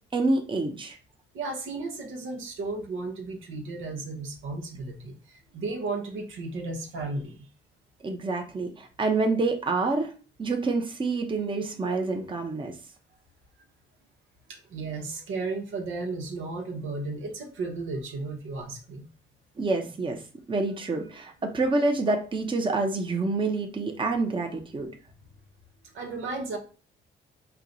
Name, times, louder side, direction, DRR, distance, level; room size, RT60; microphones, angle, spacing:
voice 1, 0.1-1.0 8.0-10.1 10.4-12.7 19.6-20.2 20.5-24.9, right 3 dB, 25° right, 3 dB, 0.8 m, -27 dB
voice 2, 1.3-7.5 14.5-19.1 25.9-26.6, right 3 dB, 80° right, 3 dB, 1.1 m, -34 dB
4.6 x 2.2 x 3.9 m, 0.37 s
cardioid pair, 90°, 20 cm